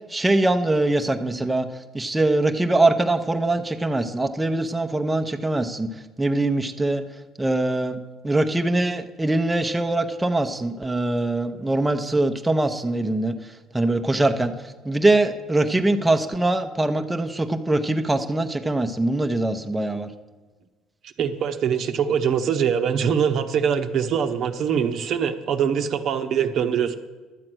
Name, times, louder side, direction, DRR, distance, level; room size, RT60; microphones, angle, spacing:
voice 1, 0.1-1.7 1.9-5.9 6.2-7.0 7.4-8.0 8.2-13.3 13.7-14.5 14.8-20.1, right 2 dB, 10° right, 5 dB, 0.8 m, -22 dB
voice 2, 21.2-27.0, right 7 dB, 60° right, 7 dB, 0.9 m, -23 dB
12.0 x 7.7 x 6.2 m, 1.3 s
cardioid pair, 100°, 0 cm